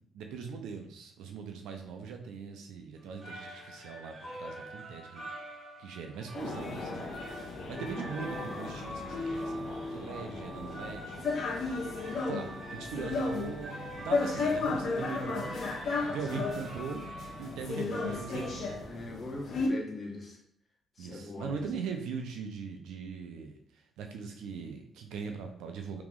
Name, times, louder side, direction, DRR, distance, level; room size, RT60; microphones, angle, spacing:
voice 1, 0.1-5.3 5.8-7.0 7.7-11.5 12.2-15.6 16.0-17.1 17.4-18.8 21.0-26.0, right 5 dB, 90° right, 4 dB, 0.6 m, -40 dB
sound 1, 3.0-18.9, right 1 dB, 55° right, 1.6 m, -45 dB
sound 2, 6.3-19.7, left 3 dB, 60° left, 0.8 m, -35 dB
voice 2, 18.1-18.5 18.9-20.4 21.0-21.7, left 2 dB, 30° left, -1 dB, 1.2 m, -41 dB
3.0 x 3.0 x 3.7 m, 0.65 s
cardioid pair, 90°, 0 cm